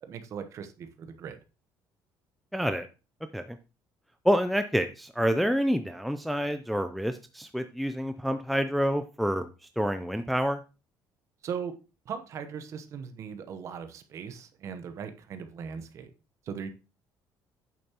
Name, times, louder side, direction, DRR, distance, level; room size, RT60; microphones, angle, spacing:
voice 1, 0.0-1.4 11.4-11.7 12.0-16.1 16.4-16.7, right 7 dB, 40° right, 9 dB, 0.9 m, -39 dB
voice 2, 2.5-2.9 3.3-3.6 4.2-9.5 9.8-10.6, equal, ahead, 8 dB, 0.4 m, -28 dB
8.6 x 7.1 x 2.9 m, 0.30 s
cardioid pair, 175°, 8 cm